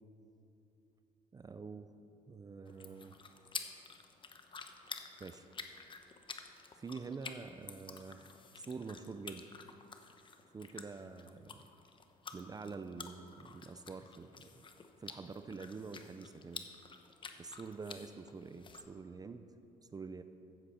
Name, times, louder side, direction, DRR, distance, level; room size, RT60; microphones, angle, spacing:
voice 1, 1.3-1.9 2.3-3.2 5.2-5.5 6.8-9.5 10.5-11.6 12.3-14.7 15.0-16.7 17.4-19.5 19.9-20.2, right 4 dB, 20° right, 10 dB, 0.5 m, -46 dB
sound 1, 2.7-18.8, left 5 dB, 30° left, 0.9 m, -50 dB
14.5 x 8.0 x 5.7 m, 2.8 s
cardioid pair, 110°, 17 cm